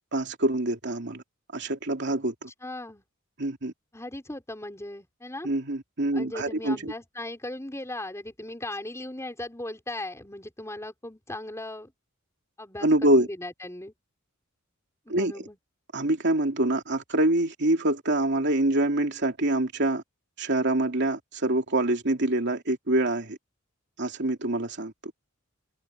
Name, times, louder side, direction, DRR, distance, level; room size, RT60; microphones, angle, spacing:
voice 1, 0.1-1.2 1.5-2.5 3.4-3.7 5.4-6.9 12.8-13.3 15.1-15.3 15.9-20.0 20.4-23.4 24.0-24.9, right 1 dB, 55° right, 2.8 m, -25 dB
voice 2, 2.6-3.0 3.9-5.5 6.1-11.9 12.6-13.9 15.1-15.6, left 1 dB, 15° left, 5.4 m, -38 dB
head